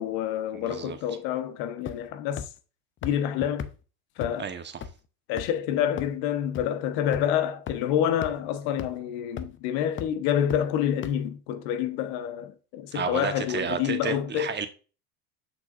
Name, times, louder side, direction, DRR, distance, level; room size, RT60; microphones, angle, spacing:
voice 1, 0.0-2.5 3.0-3.7 4.2-4.5 5.3-14.5, left 10 dB, 60° left, 1.1 m, -28 dB
voice 2, 0.5-1.0 4.4-4.9 12.9-14.7, right 6 dB, 25° right, 1.2 m, -32 dB
sound 1, 1.9-2.1 2.4-2.5 3.0-3.1 3.6-3.7 4.2-4.3 4.8-4.9 5.4-5.6 6.0-6.1 6.5-6.6 7.1-7.2 7.7-7.8 8.2-8.3 8.8-8.9 9.4-9.6 10.0-10.1 10.5-10.6 11.0-11.1, left 8 dB, 25° left, 0.7 m, -34 dB
6.7 x 6.1 x 2.5 m
hypercardioid pair, 90°, 45 cm